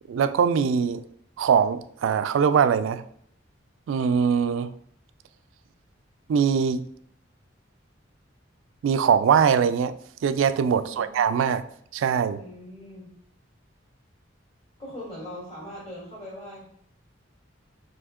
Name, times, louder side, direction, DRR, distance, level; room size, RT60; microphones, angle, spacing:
voice 1, 0.1-1.0 1.4-3.0 3.9-4.7 6.3-6.8 8.8-9.9 10.2-11.6 11.9-12.4, right 7 dB, 90° right, 13 dB, 0.3 m, -22 dB
voice 2, 10.7-11.1 12.4-13.1 14.8-16.7, left 1 dB, 30° left, -6 dB, 1.7 m, -40 dB
4.3 x 2.8 x 3.6 m, 0.65 s
head